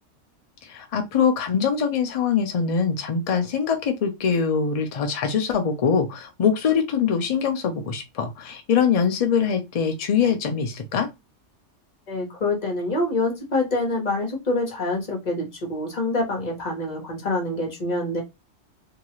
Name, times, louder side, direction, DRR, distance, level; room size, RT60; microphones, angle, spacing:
voice 1, 0.6-11.1, left 6 dB, 75° left, 0.3 m, -23 dB
voice 2, 12.1-18.2, left 2 dB, 35° left, 1.1 m, -26 dB
2.8 x 2.3 x 3.0 m
omnidirectional pair, 1.2 m